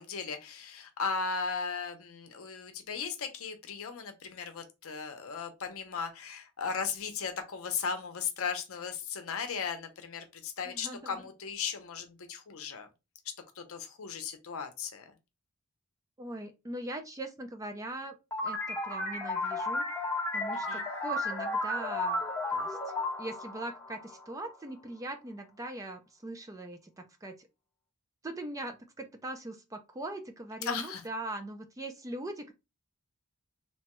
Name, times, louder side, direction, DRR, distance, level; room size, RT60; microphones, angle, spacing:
voice 1, 0.0-12.9 13.6-15.1 20.7-20.8 30.6-31.0, left 5 dB, 65° left, 0.7 m, -36 dB
voice 2, 10.6-11.2 16.2-18.2 18.4-19.9 20.3-22.2 22.5-22.8 23.2-27.5 28.2-32.5, right 1 dB, 15° right, 0.4 m, -41 dB
sound 1, 18.3-24.6, left 2 dB, 10° left, 0.9 m, -33 dB
2.9 x 2.2 x 2.9 m
head